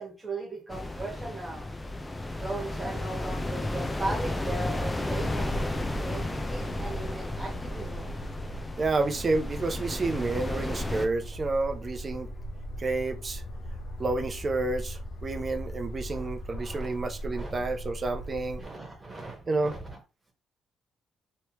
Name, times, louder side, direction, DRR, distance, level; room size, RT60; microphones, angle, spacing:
voice 1, 0.0-1.7 2.4-5.6 6.0-8.2 16.1-17.0 17.3-17.7 18.5-20.0, right 2 dB, 20° right, 1.4 m, -38 dB
sound 1, 0.7-11.1, left 1 dB, 15° left, 0.6 m, -33 dB
sound 2, 5.2-18.7, equal, 60° left, 0.9 m, -39 dB
voice 2, 8.8-12.3 12.8-13.4 14.0-18.6 19.5-19.8, right 3 dB, 35° right, 0.6 m, -30 dB
3.2 x 3.0 x 2.9 m
cardioid pair, 90°, 0 cm